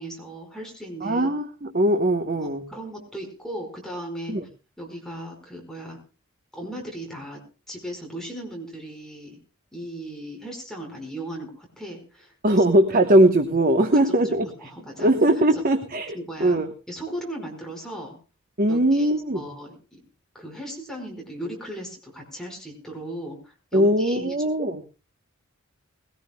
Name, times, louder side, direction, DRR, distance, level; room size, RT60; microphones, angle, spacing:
voice 1, 0.0-1.3 2.4-4.4 4.8-6.0 6.5-7.4 7.7-9.4 9.7-12.6 14.2-14.3 14.6-15.1 15.5-15.6 16.1-16.6 16.9-18.2 18.7-20.0 20.3-24.7, right 1 dB, 5° left, 0 dB, 5.0 m, -37 dB
voice 2, 1.0-2.6 4.3-4.4 12.4-14.5 15.0-16.7 18.6-19.5 23.7-24.8, right 1 dB, 45° right, 6 dB, 1.2 m, -20 dB
20.5 x 17.5 x 2.3 m, 0.32 s
head